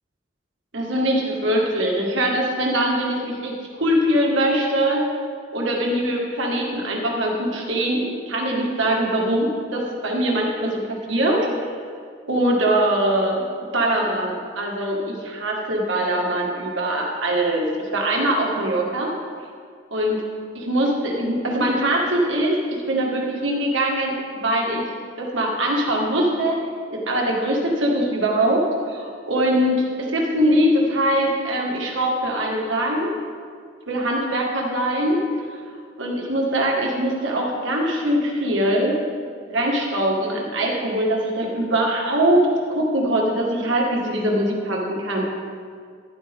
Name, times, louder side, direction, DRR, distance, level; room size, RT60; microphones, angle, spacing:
voice 1, 0.7-5.0 5.5-11.5 12.3-13.4 13.7-19.1 19.9-20.2 20.5-24.9 25.2-26.6 26.9-33.1 33.9-35.2 36.0-39.0 39.5-45.3, right 1 dB, 70° right, -1 dB, 1.9 m, -22 dB
11.0 x 11.0 x 3.6 m, 2.1 s
head